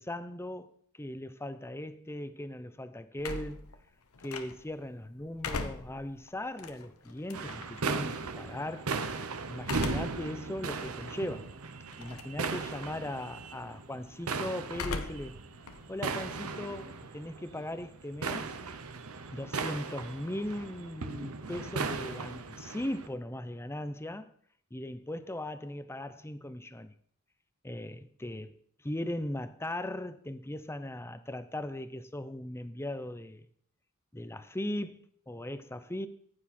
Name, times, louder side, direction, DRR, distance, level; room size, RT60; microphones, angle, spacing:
voice 1, 0.0-3.7 4.2-8.9 9.5-11.5 12.0-15.4 15.9-18.5 19.3-24.3 24.7-26.9 27.6-33.5 34.1-36.1, left 1 dB, 10° left, 0.7 m, -38 dB
sound 1, 3.2-4.8 5.2-7.8 9.6-10.3 10.8-10.9 11.9-12.4 12.7-13.1 14.7-15.4 15.7-17.1, left 3 dB, 85° left, 1.1 m, -39 dB
sound 2, 7.3-23.1, right 4 dB, 85° right, 1.0 m, -37 dB
14.5 x 9.7 x 4.4 m
head